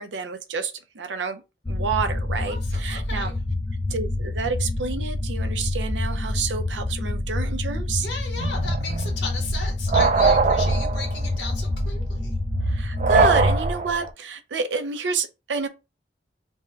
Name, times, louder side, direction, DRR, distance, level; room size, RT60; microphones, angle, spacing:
voice 1, 0.0-1.4 1.7-3.3 3.9-8.1 12.7-15.7, right 5 dB, 85° right, 0.6 m, -29 dB
sound 1, 1.6-13.4, left 2 dB, 25° left, 0.5 m, -27 dB
voice 2, 2.5-3.3 8.0-12.3, left 4 dB, 80° left, 1.4 m, -35 dB
sound 2, 8.4-14.1, right 3 dB, 40° right, 0.3 m, -22 dB
3.5 x 2.2 x 4.4 m
head